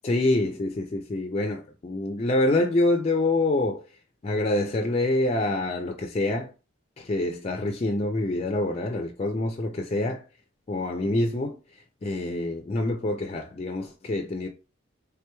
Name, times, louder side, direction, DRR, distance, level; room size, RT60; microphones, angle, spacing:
voice 1, 0.0-3.8 4.2-6.5 7.0-10.2 10.7-11.6 12.0-14.5, left 2 dB, 35° left, 0.4 m, -26 dB
3.5 x 2.9 x 2.2 m
head